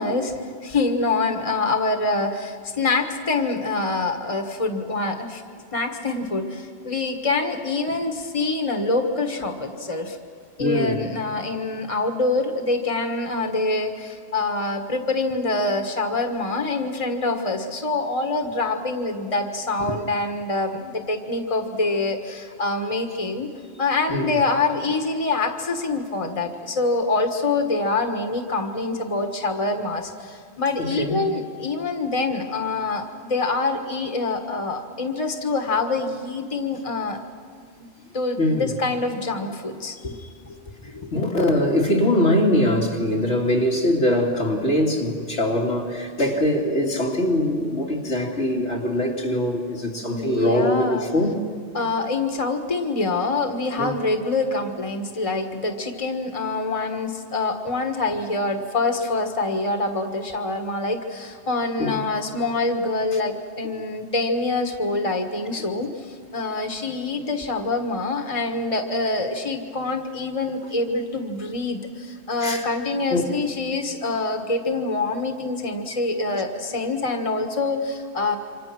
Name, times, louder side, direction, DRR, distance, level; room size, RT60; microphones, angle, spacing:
voice 1, 0.0-5.4 5.7-10.2 10.6-23.5 23.8-37.2 38.1-40.6 40.8-41.1 50.1-51.1 51.7-78.4, left 3 dB, 30° left, 5 dB, 1.7 m, -25 dB
voice 2, 10.6-11.0 24.1-24.3 30.8-31.2 38.4-38.7 41.1-51.4 53.8-53.9 61.8-62.0 72.4-72.6 73.1-73.2, left 1 dB, 80° left, -1 dB, 3.2 m, -22 dB
28.0 x 26.0 x 6.1 m, 2.2 s
omnidirectional pair, 1.1 m